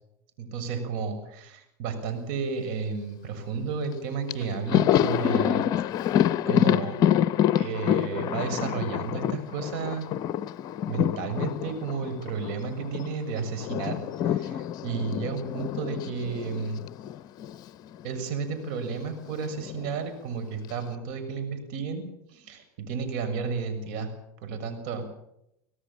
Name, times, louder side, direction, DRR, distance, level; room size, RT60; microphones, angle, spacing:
voice 1, 0.4-5.8 6.5-7.0 7.5-10.1 10.9-16.8 18.0-22.0 22.3-24.1 24.4-25.0, right 5 dB, 65° right, 7 dB, 6.8 m, -32 dB
Thunder, 3.9-4.0 4.3-13.1 13.4-17.7 17.9-18.1 19.3-20.0, left 10 dB, 45° left, 0.9 m, -27 dB
25.0 x 17.5 x 7.4 m, 0.81 s
supercardioid pair, 105°, 9 cm